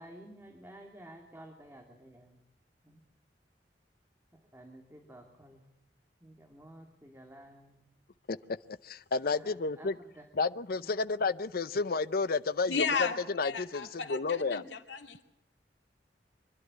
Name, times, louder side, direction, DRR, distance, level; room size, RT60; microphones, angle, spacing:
voice 1, 0.0-2.4 2.8-3.0 4.3-5.6 6.2-7.8 9.2-10.3 10.8-10.9, right 1 dB, 15° right, 2 dB, 2.2 m, -52 dB
voice 2, 8.8-10.0 10.4-12.9 13.3-14.6, left 4 dB, 60° left, 15 dB, 0.7 m, -31 dB
voice 3, 12.7-15.2, left 5 dB, 85° left, 5 dB, 2.4 m, -34 dB
25.0 x 12.0 x 9.4 m, 0.89 s
head